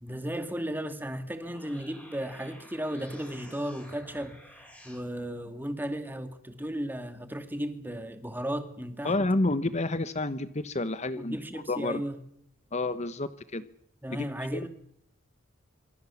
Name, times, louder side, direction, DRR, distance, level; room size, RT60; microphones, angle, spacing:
voice 1, 0.0-4.4 4.8-9.1 11.2-12.2 14.0-14.7, equal, 10° right, 8 dB, 2.4 m, -35 dB
sound 1, 1.2-5.0, equal, 5° left, 7.5 m, -51 dB
voice 2, 9.0-11.4 11.7-12.0 12.7-13.6 14.1-14.7, left 2 dB, 35° left, 13 dB, 1.0 m, -29 dB
26.5 x 24.5 x 7.2 m, 0.70 s
head